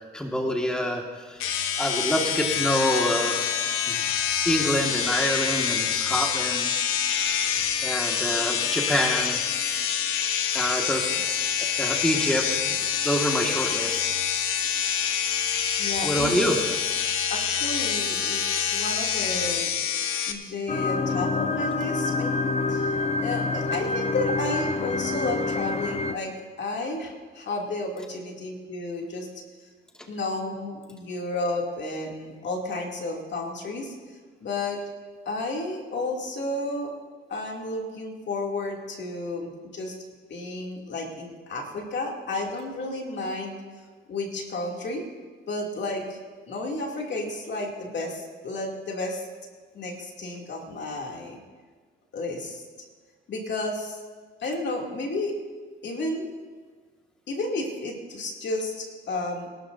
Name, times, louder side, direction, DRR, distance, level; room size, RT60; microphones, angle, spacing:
voice 1, 0.1-1.5 1.8-3.5 3.9-4.0 4.5-6.7 7.0-7.1 7.8-9.4 10.5-11.1 11.8-12.8 13.0-14.0 16.0-16.6, equal, 5° left, 0 dB, 1.9 m, -26 dB
sound 1, 1.4-20.3, left 8 dB, 85° left, 1.1 m, -26 dB
voice 2, 15.8-16.5 17.3-19.7 20.3-29.3 29.6-29.7 30.1-34.8 35.2-36.9 37.3-39.9 40.3-43.6 44.1-45.0 45.5-46.2 46.5-49.3 49.7-51.4 52.1-52.6 53.3-54.0 54.4-55.3 55.8-56.3 57.3-59.5, left 2 dB, 55° left, 0 dB, 2.8 m, -32 dB
sound 2, 20.7-26.2, left 3 dB, 30° left, 0.8 m, -27 dB
23.5 x 12.5 x 2.7 m, 1.5 s
cardioid pair, 85°, 21 cm